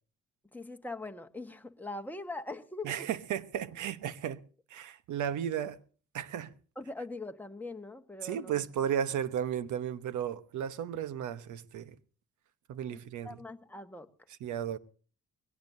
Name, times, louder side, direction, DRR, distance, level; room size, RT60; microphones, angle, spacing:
voice 1, 0.5-3.1 6.7-8.6 12.9-14.1, left 2 dB, 5° left, 1.4 m, -42 dB
voice 2, 2.8-4.4 4.7-5.8 6.1-6.5 8.2-11.9 12.7-13.4 14.4-14.8, right 9 dB, 75° right, 1.1 m, -34 dB
22.0 x 17.5 x 2.7 m
cardioid pair, 90°, 30 cm